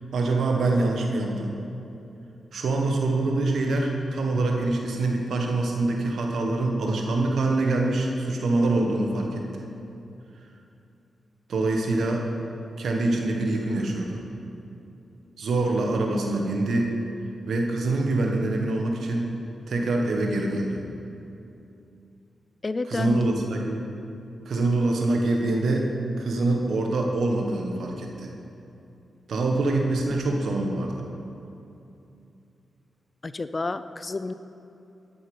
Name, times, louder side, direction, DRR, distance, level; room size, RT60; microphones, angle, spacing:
voice 1, 0.1-1.6 2.5-9.7 11.5-12.2 12.8-14.2 15.4-16.9 17.5-19.3 19.7-20.8 22.9-23.9 24.5-25.9 26.2-28.3 29.3-30.9, right 2 dB, 75° right, 1 dB, 1.3 m, -25 dB
voice 2, 22.6-23.4 33.2-34.3, left 3 dB, 40° left, 13 dB, 0.4 m, -29 dB
11.0 x 6.9 x 5.3 m, 2.8 s
cardioid pair, 50°, 0 cm